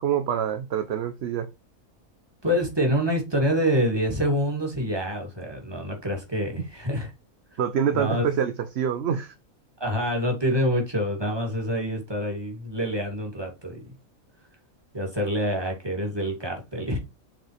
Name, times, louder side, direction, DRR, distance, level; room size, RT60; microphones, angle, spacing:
voice 1, 0.0-1.5 7.6-9.3, right 8 dB, 55° right, 0.9 m, -26 dB
voice 2, 2.4-7.1 7.9-8.2 9.8-13.8 14.9-17.0, equal, 15° right, 2.6 m, -26 dB
7.6 x 4.6 x 3.3 m
omnidirectional pair, 1.4 m